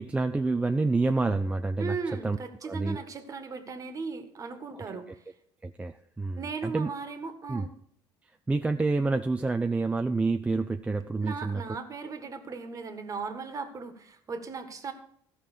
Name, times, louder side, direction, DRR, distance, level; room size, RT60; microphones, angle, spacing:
voice 1, 0.0-2.0 2.2-2.4 2.6-3.0 5.6-6.9 7.5-7.7 8.5-11.6, right 3 dB, 15° right, 7 dB, 0.5 m, -28 dB
voice 2, 1.8-5.2 6.3-7.7 11.2-14.9, right 4 dB, 35° right, 8 dB, 1.6 m, -37 dB
14.0 x 5.7 x 6.7 m, 0.67 s
cardioid pair, 100°, 10 cm